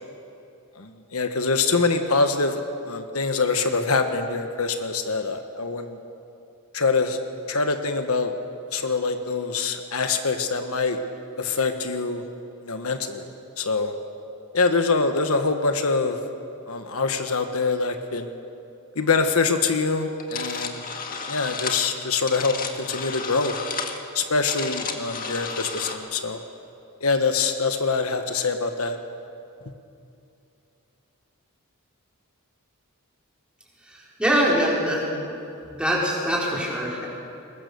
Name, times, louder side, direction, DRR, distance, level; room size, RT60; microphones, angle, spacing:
voice 1, 0.8-6.0 6.7-7.2 7.5-8.3 8.7-11.0 11.4-12.2 12.6-13.3 13.6-13.9 14.5-16.2 16.7-18.3 19.0-20.8 21.3-22.5 22.9-23.5 24.1-26.4 27.0-29.0, left 4 dB, 70° left, 6 dB, 1.3 m, -24 dB
sound 1, 20.2-26.0, left 5 dB, 40° left, 1.7 m, -32 dB
voice 2, 33.8-35.0 35.8-37.1, equal, 5° right, -4 dB, 4.3 m, -23 dB
22.0 x 20.5 x 6.9 m, 2.7 s
head